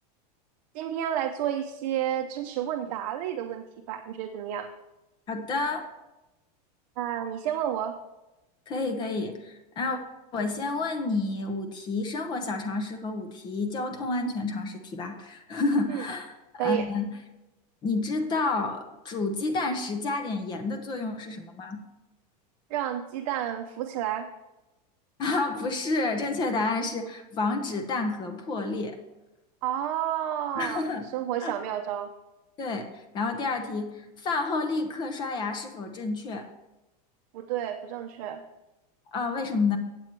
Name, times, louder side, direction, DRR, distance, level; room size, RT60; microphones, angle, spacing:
voice 1, 0.7-4.7 7.0-8.0 15.9-16.0 16.6-16.9 22.7-24.3 29.6-32.1 37.3-38.4, right 11 dB, 55° right, 5 dB, 0.6 m, -31 dB
voice 2, 5.3-5.9 8.7-10.0 10.3-17.1 17.8-21.8 25.2-29.0 30.6-31.1 31.4-31.5 32.6-36.5 39.1-39.8, left 3 dB, 20° left, 6 dB, 0.8 m, -30 dB
8.8 x 7.8 x 4.5 m, 1.0 s
supercardioid pair, 165°, 20 cm